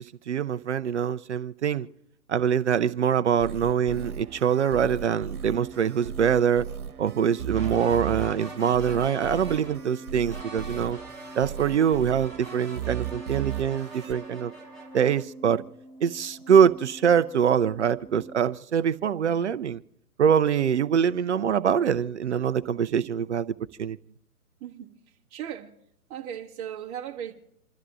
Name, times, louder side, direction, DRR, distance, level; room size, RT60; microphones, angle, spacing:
voice 1, 0.0-1.9 2.3-6.6 7.0-11.0 11.4-14.5 14.9-15.6 16.0-19.8 20.2-23.5 23.8-24.0, right 8 dB, 50° right, 0.6 m, -24 dB
sound 1, 3.4-14.2, right 9 dB, 70° right, 1.3 m, -36 dB
sound 2, 3.8-18.4, right 2 dB, 35° left, 3.8 m, -46 dB
sound 3, 7.5-9.8 10.3-15.2, right 2 dB, 15° left, 5.8 m, -44 dB
voice 2, 24.6-24.9 25.3-25.7 26.1-27.3, right 10 dB, 20° right, 1.6 m, -36 dB
28.0 x 13.0 x 2.6 m
figure-of-eight pair, 135°, 45 cm